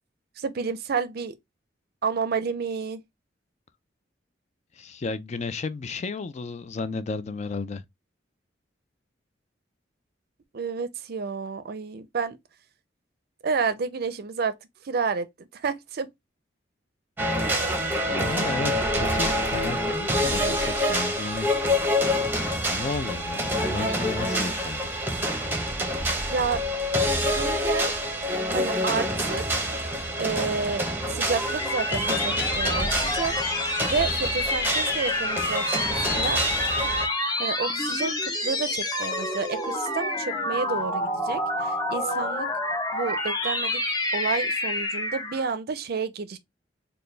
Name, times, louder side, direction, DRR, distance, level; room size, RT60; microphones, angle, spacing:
voice 1, 0.4-1.4 2.0-3.0 10.5-12.4 13.4-14.6 14.8-16.1 26.3-26.6 27.1-27.9 28.5-29.7 30.2-30.9 31.1-33.3 33.9-36.4 37.4-42.5 42.9-43.8 44.1-46.4, right 5 dB, 55° right, 0.5 m, -30 dB
voice 2, 4.7-7.8 18.1-21.5 22.7-24.8, left 4 dB, 40° left, 0.4 m, -33 dB
sound 1, 17.2-37.1, equal, 10° right, 0.8 m, -27 dB
sound 2, 30.8-45.5, left 1 dB, 20° left, 0.8 m, -28 dB
4.1 x 2.3 x 3.2 m
head